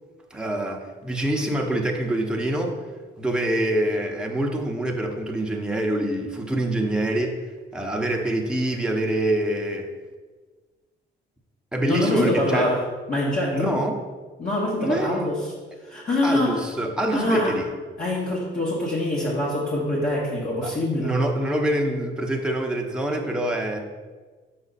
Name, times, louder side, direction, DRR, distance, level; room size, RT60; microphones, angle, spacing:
voice 1, 0.3-2.8 3.2-7.4 7.7-9.9 11.7-12.7 13.5-14.0 14.8-15.4 16.2-17.7 20.6-23.8, right 1 dB, 5° right, 1 dB, 0.9 m, -25 dB
voice 2, 11.9-12.8 13.1-13.8 14.4-15.5 15.8-16.6 17.1-17.6 18.0-21.1, left 1 dB, 45° left, -6 dB, 1.4 m, -24 dB
6.2 x 5.0 x 4.0 m, 1.4 s
cardioid pair, 90°, 20 cm